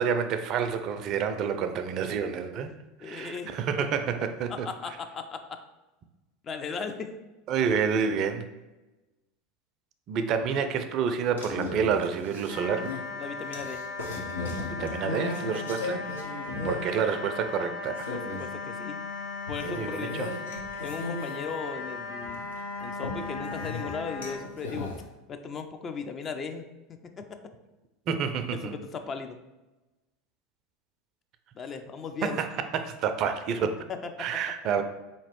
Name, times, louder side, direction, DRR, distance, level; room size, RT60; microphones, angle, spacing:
voice 1, 0.0-2.7 3.0-5.0 7.5-8.5 10.1-12.9 14.7-16.1 16.6-18.1 19.6-20.3 28.1-28.8 32.2-32.5 32.7-33.8 34.2-34.8, right 6 dB, 45° right, 8 dB, 0.3 m, -28 dB
voice 2, 3.0-3.5 4.5-5.6 6.4-7.1 13.2-13.8 18.1-19.1 19.5-20.2 20.8-22.5 22.8-25.0 25.3-26.6 27.2-27.3 28.5-29.4 31.5-32.4 33.9-34.3, left 5 dB, 35° left, 7 dB, 0.4 m, -37 dB
sound 1, 11.4-17.0 17.4-17.5 17.9-18.5 19.5-21.9 22.2-25.0, left 3 dB, 85° left, 0.7 m, -37 dB
sound 2, 12.5-24.4, left 4 dB, 65° left, 1.1 m, -37 dB
4.1 x 2.9 x 3.0 m, 1.1 s
figure-of-eight pair, 80°, 0 cm